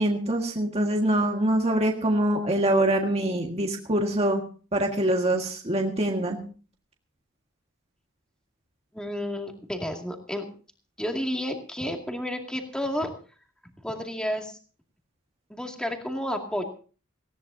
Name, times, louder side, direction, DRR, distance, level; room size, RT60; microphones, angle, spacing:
voice 1, 0.0-4.4 4.7-6.4, right 1 dB, 30° right, 1 dB, 1.7 m, -24 dB
voice 2, 8.9-10.5 11.0-13.1 13.8-14.6 15.5-16.6, equal, 5° left, 2 dB, 2.3 m, -31 dB
19.0 x 17.0 x 2.8 m, 0.39 s
head